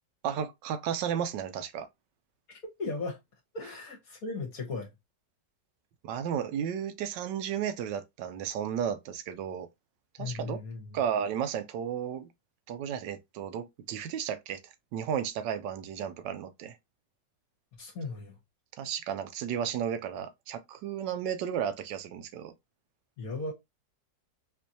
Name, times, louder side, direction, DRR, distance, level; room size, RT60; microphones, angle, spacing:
voice 1, 0.2-1.9 6.0-9.7 10.2-10.6 10.9-12.3 12.7-14.6 14.9-16.8 18.8-22.5, right 8 dB, 75° right, 1.2 m, -33 dB
voice 2, 2.8-3.2 3.5-4.9 10.2-11.0 17.7-18.3 23.2-23.5, left 3 dB, 60° left, 1.2 m, -36 dB
4.4 x 2.5 x 2.6 m
omnidirectional pair, 2.0 m